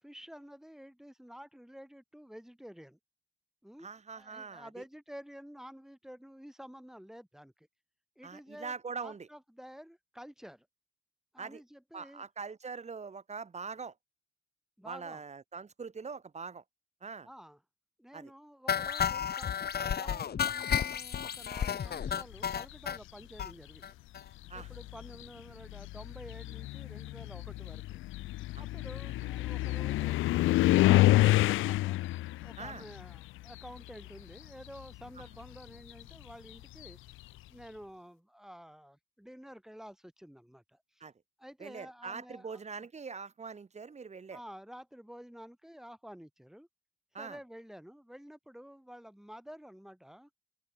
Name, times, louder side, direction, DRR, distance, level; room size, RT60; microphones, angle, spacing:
voice 1, 0.0-3.0 3.6-3.9 4.1-7.7 8.2-10.7 11.3-12.3 14.8-15.2 17.2-17.6 18.0-24.0 24.5-28.0 28.6-30.3 30.8-32.0 32.4-37.0 37.5-41.0 41.4-42.6 44.3-46.7 47.2-50.3, equal, ahead, 7.3 m, -50 dB
voice 2, 3.8-4.8 8.2-9.3 11.4-11.6 11.9-13.9 14.9-16.6 17.0-17.3 18.1-18.3 24.5-24.7 28.6-28.7 32.6-32.8 41.0-41.1 41.6-44.4 47.1-47.4, right 5 dB, 35° right, 3.4 m, -43 dB
sound 1, 18.7-23.0 23.4-23.5 23.8-23.9 24.1-24.3 24.6-24.7, left 8 dB, 55° left, 2.8 m, -32 dB
sound 2, 22.2-22.8 23.7-23.8 24.4-34.3 34.6-37.2, left 17 dB, 90° left, 0.7 m, -29 dB
open air
cardioid pair, 90°, 20 cm